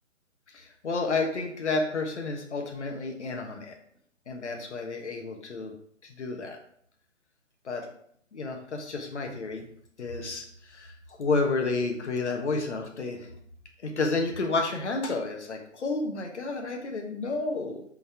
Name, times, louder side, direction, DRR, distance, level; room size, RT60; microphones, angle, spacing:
voice 1, 0.5-3.8 4.3-5.7 6.0-6.6 7.6-7.9 8.3-9.6 10.0-13.3 13.8-17.8, left 3 dB, 60° left, 2 dB, 1.4 m, -31 dB
5.9 x 4.1 x 4.7 m, 0.67 s
hypercardioid pair, 155°, 38 cm